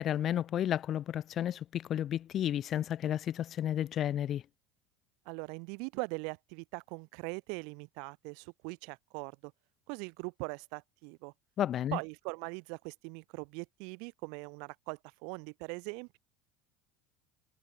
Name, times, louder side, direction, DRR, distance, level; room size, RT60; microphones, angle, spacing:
voice 1, 0.0-4.4 11.6-12.0, left 11 dB, 25° left, 0.4 m, -32 dB
voice 2, 5.3-9.5 9.9-11.3 11.9-16.2, right 37 dB, 55° right, 1.7 m, -41 dB
cardioid pair, 180°, 0 cm